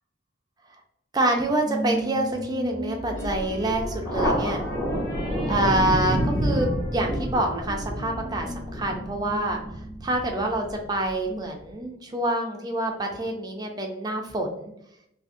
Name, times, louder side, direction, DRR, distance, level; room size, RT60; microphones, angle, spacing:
voice 1, 1.1-4.6 5.5-9.6 10.0-14.7, right 1 dB, 20° right, 2 dB, 0.4 m, -27 dB
sound 1, 1.6-10.4, equal, 50° left, 1.1 m, -36 dB
sound 2, 3.1-6.1, equal, 65° left, 0.7 m, -41 dB
Thunder, 4.0-11.1, equal, 5° left, 1.1 m, -28 dB
4.9 x 2.1 x 2.6 m, 0.78 s
head